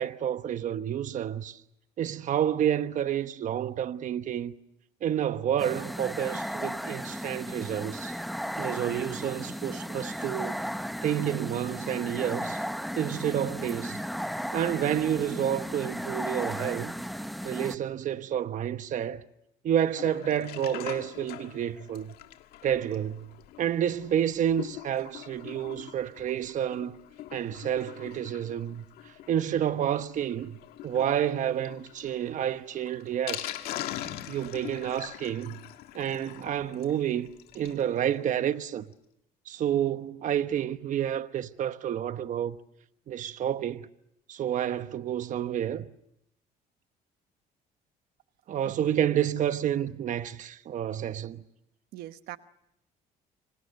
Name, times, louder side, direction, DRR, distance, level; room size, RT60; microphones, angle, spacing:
voice 1, 0.0-1.6 2.0-4.5 5.0-8.2 8.6-10.6 11.0-12.6 13.0-14.0 14.5-16.9 17.4-19.2 19.6-22.1 22.6-23.3 23.6-27.0 27.3-30.6 30.8-33.6 34.3-35.6 35.9-37.3 37.5-38.8 39.5-42.6 43.1-43.9 44.3-45.9 48.5-51.4, right 10 dB, 55° right, 1.1 m, -29 dB
sound 1, 5.6-17.8, equal, ahead, 0.9 m, -35 dB
Sink (filling or washing), 19.8-37.8 38.2-38.3 38.5-38.6 38.9-39.0, left 13 dB, 85° left, 1.8 m, -43 dB
voice 2, 48.6-49.0 51.9-52.4, right 14 dB, 85° right, 1.1 m, -42 dB
28.5 x 25.0 x 6.6 m
cardioid pair, 110°, 16 cm